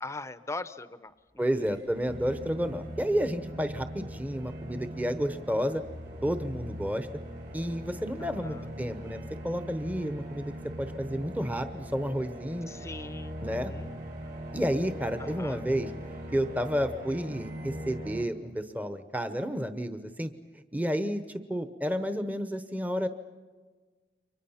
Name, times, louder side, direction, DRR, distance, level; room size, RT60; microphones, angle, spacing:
voice 1, 0.0-1.8 8.2-8.7 12.7-13.9 15.2-15.6, left 2 dB, 15° left, 14 dB, 0.7 m, -41 dB
sound 1, 1.1-18.0, left 1 dB, 90° right, 7.0 m, -56 dB
voice 2, 1.4-5.8 6.2-7.1 7.5-10.5 10.8-12.7 13.4-13.7 14.5-15.9 16.3-20.3 20.7-21.2 21.5-23.1, equal, 10° right, 9 dB, 0.9 m, -31 dB
sound 2, 2.1-18.3, equal, 55° right, 2.8 m, -41 dB
30.0 x 24.5 x 5.7 m, 1.4 s
head